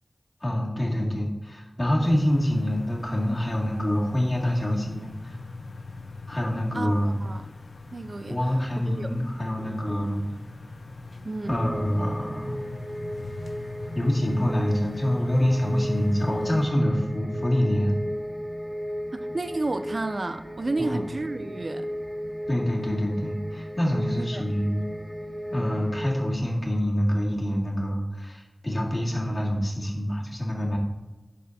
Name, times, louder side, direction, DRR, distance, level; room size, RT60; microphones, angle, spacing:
voice 1, 0.4-5.4 6.3-7.2 8.3-10.2 11.5-12.6 13.9-18.0 20.8-21.0 22.5-24.9 25.5-30.8, equal, 40° left, -3 dB, 2.1 m, -26 dB
sound 1, 2.0-16.7, left 3 dB, 90° left, 0.5 m, -40 dB
voice 2, 6.7-7.5 7.9-9.1 11.2-11.6 19.1-21.9 24.2-24.4, right 2 dB, 65° right, 9 dB, 0.4 m, -32 dB
sound 2, 11.4-26.2, equal, 20° right, 0.7 m, -35 dB
11.0 x 4.3 x 2.7 m, 1.1 s
wide cardioid pair, 45°, 0 cm